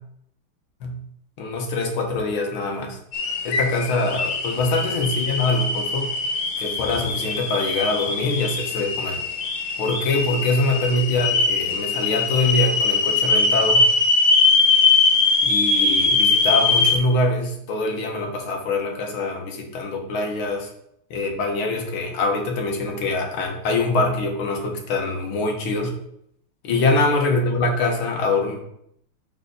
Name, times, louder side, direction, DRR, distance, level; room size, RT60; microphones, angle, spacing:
voice 1, 1.4-3.0 3.4-6.1 6.6-9.2 9.8-13.9 15.4-20.7 21.1-25.9 26.6-28.6, left 2 dB, 75° left, 2 dB, 2.0 m, -24 dB
sound 1, 3.1-17.0, left 3 dB, 60° left, 1.3 m, -21 dB
6.5 x 5.1 x 5.3 m, 0.73 s
omnidirectional pair, 2.3 m